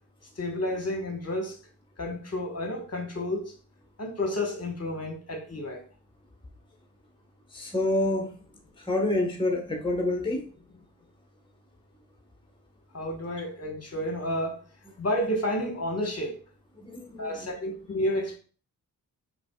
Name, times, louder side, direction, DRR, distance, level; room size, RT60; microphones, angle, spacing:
voice 1, 0.4-1.6 2.0-3.5 4.0-5.8 12.9-14.6 15.0-16.4 17.2-18.4, left 1 dB, 35° left, 1.3 m, -30 dB
voice 2, 7.5-8.3 8.9-10.4 16.8-17.5, left 2 dB, 10° left, 1.2 m, -27 dB
5.0 x 3.2 x 2.3 m
supercardioid pair, 40°, 41 cm